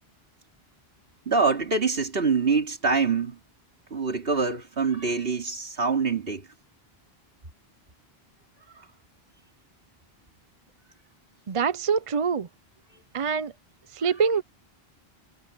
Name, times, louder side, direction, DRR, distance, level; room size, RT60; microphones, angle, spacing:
voice 1, 1.3-3.4 3.9-6.4 8.8-8.9, right 4 dB, 65° right, 3.0 m, -25 dB
voice 2, 11.5-12.5 13.1-13.5 13.9-14.4, right 6 dB, 40° right, 0.5 m, -25 dB
omnidirectional pair, 1.0 m